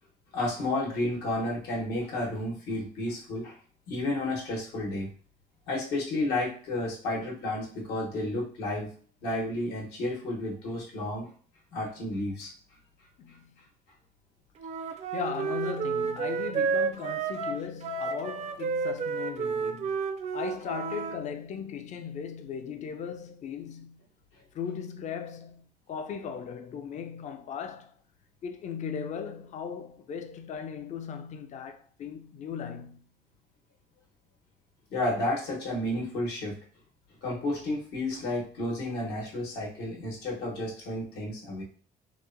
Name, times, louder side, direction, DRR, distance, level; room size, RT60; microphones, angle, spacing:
voice 1, 0.3-3.6 3.9-5.1 5.7-8.9 9.2-11.3 11.7-12.5 34.9-36.6 37.2-41.6, left 1 dB, 85° left, 1.0 m, -31 dB
voice 2, 13.2-13.6 14.8-20.0 20.3-24.0 24.5-27.9 28.4-33.0, left 7 dB, 45° left, 0.4 m, -38 dB
Wind instrument woodwind instrument, 14.6-21.2, right 5 dB, 40° right, 0.4 m, -31 dB
2.8 x 2.1 x 2.5 m
cardioid pair, 110°, 17 cm